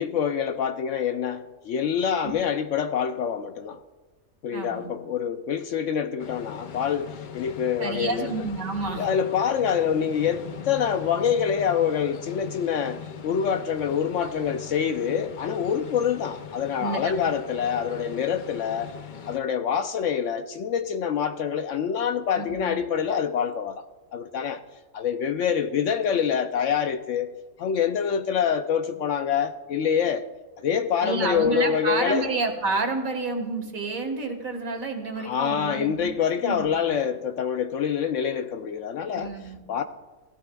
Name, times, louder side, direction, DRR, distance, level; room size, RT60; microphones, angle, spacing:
voice 1, 0.0-3.8 4.4-8.3 9.0-18.9 19.3-23.8 24.1-24.6 24.9-27.3 27.6-30.2 30.6-32.3 35.2-39.3 39.7-39.8, left 7 dB, 70° left, 0.8 m, -26 dB
voice 2, 4.5-4.9 7.8-9.1 16.8-17.1 22.4-22.8 31.0-36.1 36.4-36.9 39.1-39.6, right 3 dB, 70° right, 2.0 m, -29 dB
sound 1, 6.2-19.4, left 7 dB, 85° left, 0.4 m, -40 dB
17.0 x 15.5 x 2.3 m
omnidirectional pair, 1.6 m